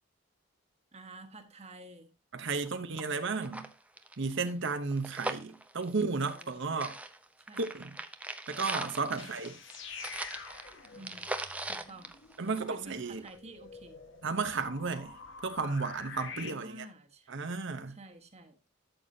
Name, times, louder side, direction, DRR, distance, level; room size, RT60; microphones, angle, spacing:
voice 1, 0.9-2.1 6.1-6.5 7.4-7.6 9.1-9.3 10.9-11.3 11.7-12.1 12.7-14.0 16.3-17.3 17.9-18.6, right 2 dB, 35° right, 1.3 m, -50 dB
voice 2, 2.3-3.7 4.2-7.0 7.6-8.0 8.5-9.5 12.4-13.2 14.2-15.1 15.4-16.9 17.3-18.0, right 4 dB, 65° right, 0.9 m, -33 dB
sound 1, 2.6-2.7 3.0-3.1 3.4-6.5 6.8-12.9 13.3-13.4, right 2 dB, 5° right, 0.6 m, -40 dB
sound 2, 9.0-16.5, left 5 dB, 65° left, 1.5 m, -48 dB
12.5 x 6.9 x 2.7 m
head